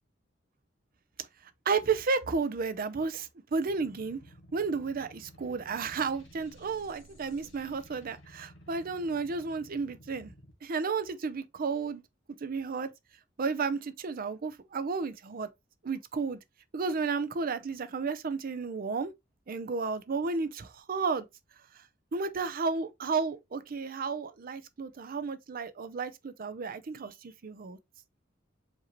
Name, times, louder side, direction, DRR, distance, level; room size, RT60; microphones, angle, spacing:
voice 1, 1.7-4.2 4.5-10.3 10.6-12.0 12.4-12.9 13.4-15.5 15.8-16.4 16.7-19.1 19.5-21.3 22.1-27.8, right 4 dB, 50° right, 0.5 m, -32 dB
sound 1, 3.7-10.5, equal, 75° left, 1.6 m, -55 dB
5.0 x 2.7 x 3.0 m
head